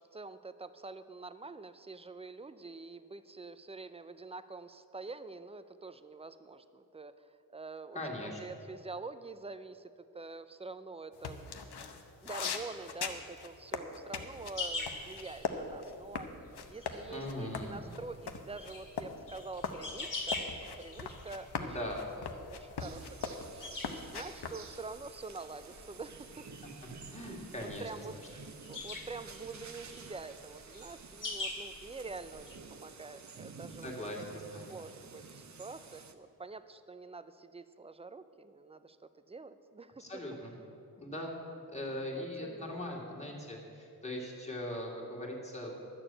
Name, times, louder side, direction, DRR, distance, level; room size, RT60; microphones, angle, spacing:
voice 1, 0.0-11.6 12.2-16.3 16.7-20.5 20.8-21.9 22.5-23.5 23.9-26.5 27.6-28.1 28.7-33.9 34.7-40.2 41.2-41.6 42.1-43.0, right 3 dB, 15° right, 12 dB, 0.4 m, -46 dB
voice 2, 7.9-8.4 17.1-17.8 21.6-22.1 26.6-26.7 27.1-27.9 33.8-34.2 34.5-34.8 40.0-40.5 41.0-41.3 41.7-45.7, left 1 dB, 15° left, -2 dB, 2.1 m, -40 dB
sound 1, 11.2-15.5 15.8-24.6, left 5 dB, 90° left, 0.9 m, -40 dB
sound 2, 14.6-32.6, left 2 dB, 55° left, 1.8 m, -45 dB
sound 3, 22.8-36.1, right 5 dB, 45° right, 0.7 m, -51 dB
12.0 x 6.8 x 8.7 m, 2.7 s
wide cardioid pair, 120°, 39 cm